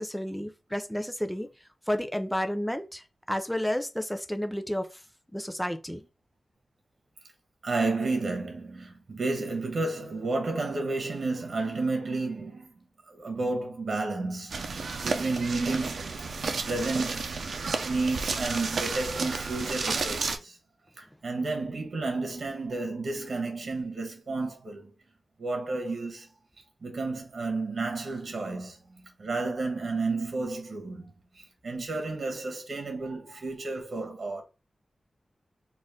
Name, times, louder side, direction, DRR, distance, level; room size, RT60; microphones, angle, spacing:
voice 1, 0.0-1.5 1.9-5.0 5.3-6.1, equal, 5° left, 0.5 m, -31 dB
voice 2, 7.6-16.3 16.6-20.6 21.0-24.9 25.4-26.3 26.8-34.4, right 3 dB, 65° right, 1.3 m, -32 dB
sound 1, 14.5-20.4, right 4 dB, 90° right, 0.5 m, -32 dB
4.2 x 2.5 x 3.6 m
wide cardioid pair, 125°, 0 cm